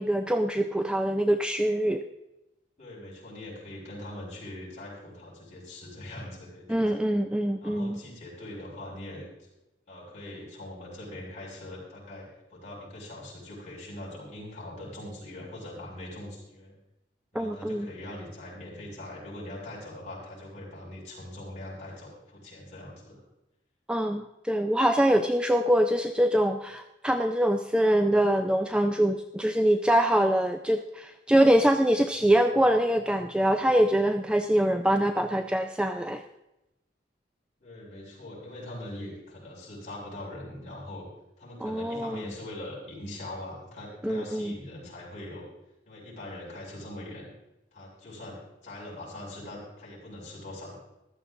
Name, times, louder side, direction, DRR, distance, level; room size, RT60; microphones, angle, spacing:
voice 1, 0.0-2.0 6.7-8.0 17.3-17.9 23.9-36.2 41.6-42.3 44.0-44.6, right 1 dB, 5° right, 7 dB, 0.4 m, -24 dB
voice 2, 2.8-6.9 7.6-9.5 9.9-16.8 17.3-23.2 37.6-41.1 41.4-45.5 45.9-47.3 47.7-50.8, left 1 dB, 40° left, -6 dB, 6.0 m, -42 dB
15.0 x 12.5 x 3.7 m, 0.94 s
head